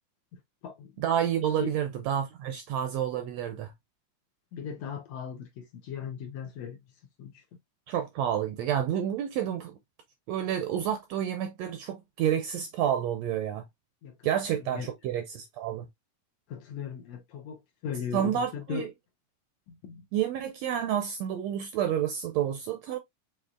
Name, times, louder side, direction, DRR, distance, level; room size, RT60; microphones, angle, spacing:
voice 1, 0.3-0.9 1.6-1.7 4.5-6.8 7.2-7.4 14.0-14.2 14.5-14.9 16.5-18.9 19.7-20.0, left 7 dB, 75° left, 1.6 m, -38 dB
voice 2, 1.0-3.7 7.9-9.7 10.3-13.6 14.2-15.9 18.1-18.9 20.1-23.0, right 10 dB, 80° right, 1.5 m, -29 dB
6.5 x 3.0 x 2.4 m
omnidirectional pair, 3.5 m